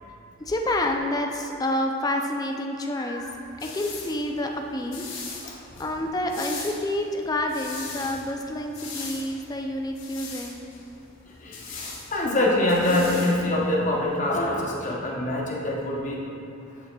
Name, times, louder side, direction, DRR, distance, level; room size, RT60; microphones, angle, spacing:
voice 1, 0.4-3.3 3.6-5.0 5.3-10.7, left 1 dB, 20° left, 3 dB, 0.4 m, -28 dB
sound 1, 3.2-14.2, left 4 dB, 75° left, 1.1 m, -41 dB
voice 2, 5.4-5.8 11.4-16.2 16.6-16.7, left 1 dB, 40° left, -3 dB, 0.9 m, -25 dB
9.0 x 5.6 x 2.3 m, 2.7 s
head